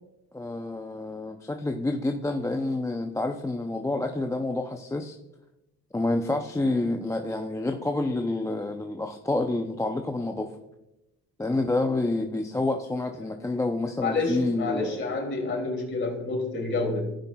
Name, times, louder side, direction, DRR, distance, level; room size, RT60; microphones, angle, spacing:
voice 1, 0.3-5.2 5.9-10.5 11.4-15.0, left 2 dB, 10° left, 4 dB, 0.5 m, -28 dB
voice 2, 14.0-17.0, left 3 dB, 35° left, 1 dB, 2.7 m, -28 dB
16.0 x 5.5 x 2.3 m, 0.93 s
cardioid pair, 90°, 32 cm